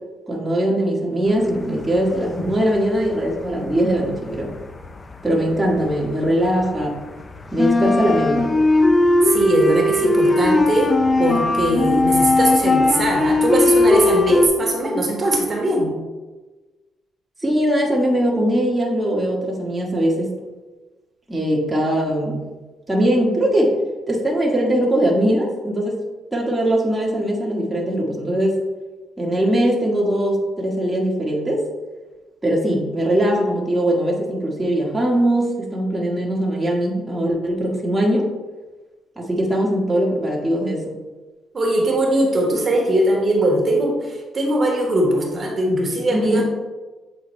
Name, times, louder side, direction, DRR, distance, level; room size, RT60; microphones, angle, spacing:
voice 1, 0.3-4.5 5.2-7.0 7.5-8.5 17.4-20.3 21.3-22.4 22.9-23.8 24.1-26.0 26.3-28.6 29.2-31.6 32.4-38.3 39.2-40.9 46.1-46.4, right 1 dB, 10° right, -3 dB, 1.4 m, -21 dB
sound 1, 1.8-2.7 3.0-6.0 6.3-14.5, left 2 dB, 30° left, 0.5 m, -18 dB
voice 2, 9.2-15.9 41.5-46.4, right 1 dB, 40° right, 0 dB, 1.4 m, -20 dB
7.6 x 3.9 x 3.2 m, 1.2 s
cardioid pair, 90°, 0 cm